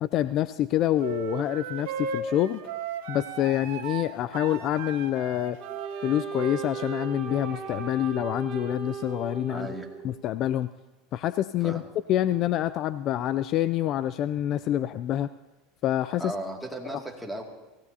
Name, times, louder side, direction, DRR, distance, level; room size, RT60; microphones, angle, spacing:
voice 1, 0.0-2.6 3.1-5.6 6.0-9.7 10.0-10.7 11.1-11.8 12.1-15.3 15.8-16.3, left 12 dB, 50° left, 15 dB, 0.4 m, -27 dB
sound 1, 1.0-7.5, right 6 dB, 85° right, 1.4 m, -36 dB
Wind instrument woodwind instrument, 5.6-10.2, right 6 dB, 50° right, 2.7 m, -37 dB
voice 2, 9.5-9.9 11.5-11.8 16.2-17.4, right 1 dB, ahead, 1 dB, 2.3 m, -36 dB
24.5 x 16.0 x 2.8 m, 1.1 s
supercardioid pair, 115°, 0 cm